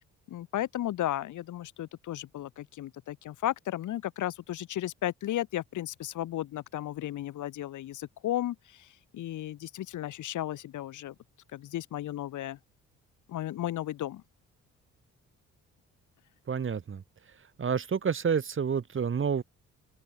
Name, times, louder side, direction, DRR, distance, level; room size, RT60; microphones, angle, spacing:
voice 1, 0.3-11.1 11.5-12.6 13.3-14.2, left 13 dB, 75° left, 3.1 m, -34 dB
voice 2, 16.5-17.0 17.6-19.4, right 6 dB, 40° right, 3.1 m, -29 dB
open air
cardioid pair, 90°, 30 cm